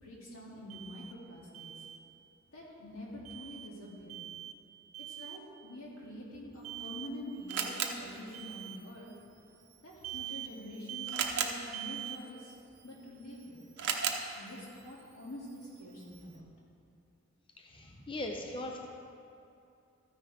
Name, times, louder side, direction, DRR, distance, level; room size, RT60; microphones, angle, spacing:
voice 1, 0.0-1.7 2.5-4.2 5.0-9.1 9.8-12.5 12.8-13.6 14.3-16.4 17.7-18.1, left 1 dB, 80° left, -5 dB, 2.7 m, -46 dB
Alarm, 0.7-1.2 1.5-2.0 3.3-3.7 4.1-4.6 4.9-5.4 6.6-7.1 7.5-8.0 8.3-8.8 10.0-10.5 10.9-11.4 11.7-12.2, right 13 dB, 85° right, 0.4 m, -43 dB
Camera, 6.5-16.4, right 6 dB, 55° right, 0.9 m, -40 dB
voice 2, 17.6-18.8, left 1 dB, 25° left, 2 dB, 0.6 m, -39 dB
13.5 x 9.7 x 3.6 m, 2.6 s
head